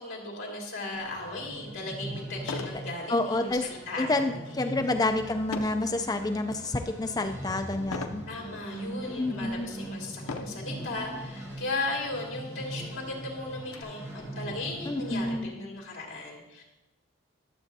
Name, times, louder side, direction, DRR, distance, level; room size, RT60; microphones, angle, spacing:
voice 1, 0.0-4.8 8.3-16.6, left 2 dB, 75° left, -1 dB, 2.1 m, -37 dB
sound 1, 0.9-15.4, right 1 dB, 15° right, 1.2 m, -41 dB
sound 2, 1.5-1.6 2.4-2.8 3.3-3.6 5.5-5.9 6.5-6.9 7.9-8.3 9.0-9.1 10.2-10.7 11.7-11.8 12.2-12.3 12.7-13.8, left 3 dB, 90° left, 0.6 m, -37 dB
voice 2, 3.1-3.6 4.0-8.2 9.2-9.7 14.9-15.5, left 2 dB, 20° left, 6 dB, 0.4 m, -28 dB
11.5 x 7.0 x 2.7 m, 1.0 s
head